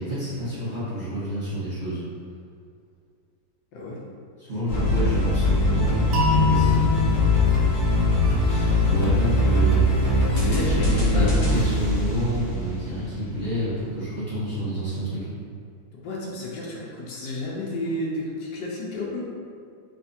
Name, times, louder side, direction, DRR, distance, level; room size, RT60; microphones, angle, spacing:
voice 1, 0.0-2.0 4.4-7.1 8.4-9.8 10.6-15.3, equal, 25° right, -13 dB, 1.1 m, -29 dB
sound 1, 4.7-13.1, left 1 dB, 55° left, 0.5 m, -21 dB
sound 2, 6.1-9.0, left 5 dB, 75° right, 0.6 m, -26 dB
voice 2, 10.3-10.9 11.1-11.7 15.9-19.3, left 1 dB, 75° left, -4 dB, 1.3 m, -31 dB
3.3 x 3.2 x 2.7 m, 2.3 s
omnidirectional pair, 2.0 m